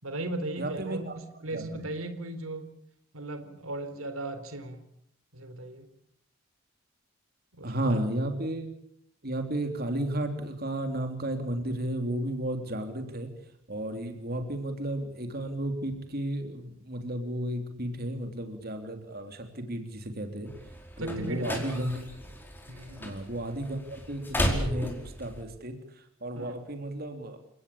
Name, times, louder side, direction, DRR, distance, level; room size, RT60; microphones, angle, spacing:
voice 1, 0.0-2.7 3.1-4.8 5.3-5.9 7.5-8.0 21.0-21.9 22.7-23.2 26.4-26.6, right 2 dB, 90° right, 10 dB, 3.8 m, -37 dB
voice 2, 0.6-1.1 1.5-1.6 7.6-8.7 9.2-13.3 13.7-20.5 21.0-22.0 23.0-24.9 25.2-25.8 26.2-27.4, right 1 dB, 50° right, 6 dB, 3.4 m, -33 dB
sound 1, 20.5-25.4, equal, 10° left, 4.8 m, -35 dB
30.0 x 18.5 x 8.7 m, 0.70 s
head